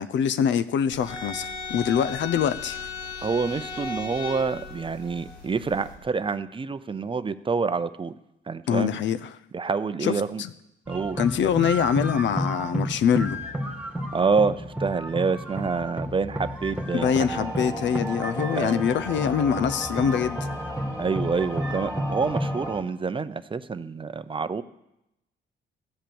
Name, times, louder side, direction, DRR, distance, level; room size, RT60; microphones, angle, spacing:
voice 1, 0.0-2.8 8.7-9.3 10.0-10.5 11.2-13.4 16.9-20.5, left 8 dB, 70° left, 0.7 m, -24 dB
sound 1, 0.9-5.9, left 4 dB, 90° left, 3.3 m, -36 dB
voice 2, 3.2-8.1 8.5-9.0 9.5-10.4 10.9-11.2 14.1-17.5 18.6-18.8 21.0-24.6, right 4 dB, 25° right, 0.6 m, -27 dB
sound 2, 10.9-22.7, equal, 5° right, 2.1 m, -32 dB
sound 3, 17.0-22.8, right 1 dB, 15° left, 2.5 m, -36 dB
14.5 x 7.5 x 7.0 m
cardioid pair, 90°, 20 cm